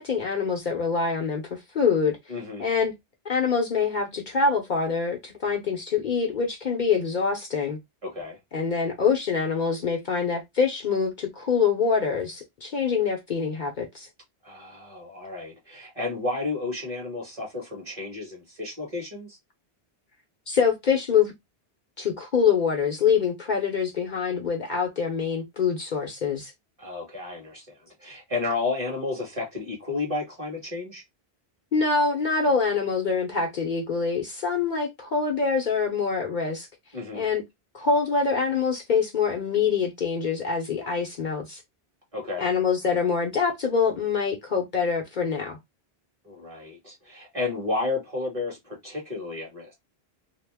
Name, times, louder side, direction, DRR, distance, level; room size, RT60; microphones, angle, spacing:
voice 1, 0.0-2.2 2.6-2.9 3.2-7.8 8.5-14.1 20.5-21.3 22.0-26.5 31.7-36.7 37.1-37.4 37.7-41.6 42.4-45.6, left 5 dB, 55° left, 0.7 m, -25 dB
voice 2, 2.3-2.7 8.0-8.4 14.4-19.4 26.8-31.0 36.9-37.3 42.1-42.5 46.2-49.7, left 3 dB, 35° right, 1.5 m, -32 dB
2.8 x 2.0 x 3.4 m
omnidirectional pair, 1.1 m